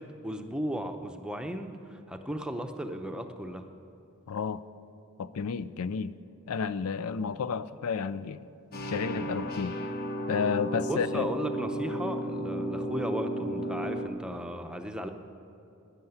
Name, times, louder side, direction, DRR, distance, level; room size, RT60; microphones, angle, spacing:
voice 1, 0.0-3.7 10.9-15.1, equal, 5° right, 0.7 m, -35 dB
voice 2, 4.3-4.6 5.2-6.2 6.5-8.5 8.8-9.8 10.3-11.3, left 6 dB, 85° left, 0.4 m, -31 dB
sound 1, 8.7-14.1, right 1 dB, 45° left, 0.8 m, -33 dB
12.5 x 10.5 x 7.9 m
head